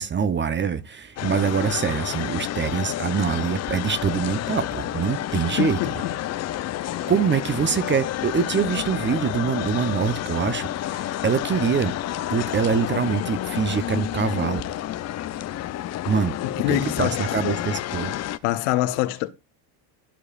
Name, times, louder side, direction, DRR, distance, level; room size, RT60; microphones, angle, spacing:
voice 1, 0.0-5.8 7.1-11.9 12.3-14.6 16.1-16.3 16.7-18.2, right 6 dB, 25° right, 0.7 m, -24 dB
sound 1, 1.2-18.4, left 13 dB, 35° left, 0.5 m, -30 dB
voice 2, 5.6-6.1 16.4-17.2 18.4-19.3, left 14 dB, 70° left, 1.2 m, -24 dB
13.0 x 4.8 x 2.4 m
supercardioid pair, 100°, 49 cm